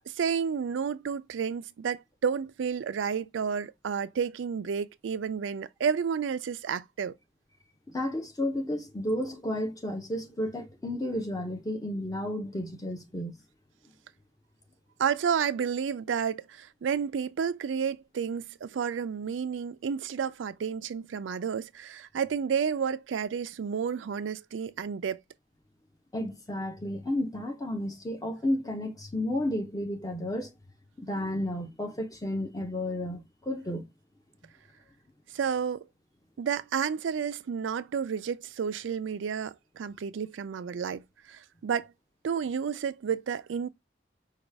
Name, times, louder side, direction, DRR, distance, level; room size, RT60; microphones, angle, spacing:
voice 1, 0.1-7.2 15.0-25.2 35.3-35.9 36.4-41.9 42.2-43.7, right 7 dB, 90° right, 0.4 m, -31 dB
voice 2, 7.9-13.4 26.1-30.5 31.0-33.9, left 1 dB, 20° left, 0.8 m, -32 dB
5.0 x 2.3 x 3.4 m
head